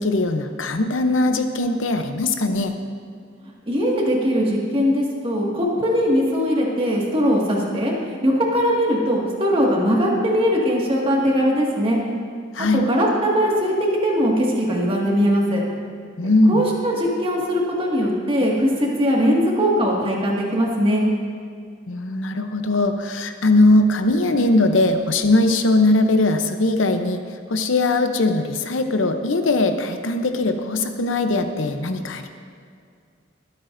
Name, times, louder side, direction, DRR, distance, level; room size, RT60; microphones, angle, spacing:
voice 1, 0.0-2.7 12.5-12.8 16.2-16.6 21.9-27.2 27.5-32.3, left 2 dB, 75° left, 7 dB, 0.7 m, -20 dB
voice 2, 3.7-12.0 12.7-15.6 16.5-21.1, equal, 30° right, -3 dB, 1.9 m, -20 dB
23.0 x 8.5 x 2.6 m, 2.2 s
head